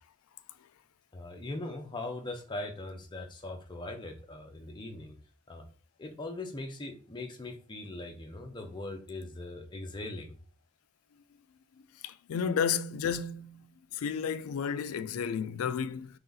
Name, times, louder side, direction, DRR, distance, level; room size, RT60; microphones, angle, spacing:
voice 1, 1.1-5.2 5.5-5.7 6.0-10.4, left 2 dB, 20° left, 0.6 m, -40 dB
voice 2, 12.0-16.1, left 7 dB, 80° left, 0.3 m, -32 dB
3.4 x 2.8 x 3.8 m
head